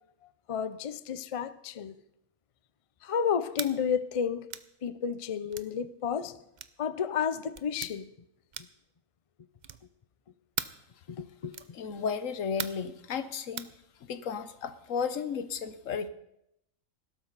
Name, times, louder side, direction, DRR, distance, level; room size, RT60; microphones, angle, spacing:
voice 1, 0.5-2.0 3.0-4.5 4.8-6.4 6.8-8.1 11.1-11.6, left 7 dB, 55° left, 0.3 m, -31 dB
sound 1, 3.5-3.8 4.5-4.7 5.5-5.7 6.6-6.8 7.5-7.9 8.5-8.9 9.6-9.9 10.6-10.8 11.5-11.8 12.6-12.9 13.6-13.7, right 8 dB, 50° right, 0.5 m, -38 dB
voice 2, 11.7-13.7 14.0-16.1, left 6 dB, 75° left, 1.3 m, -34 dB
18.5 x 12.5 x 4.0 m
omnidirectional pair, 1.4 m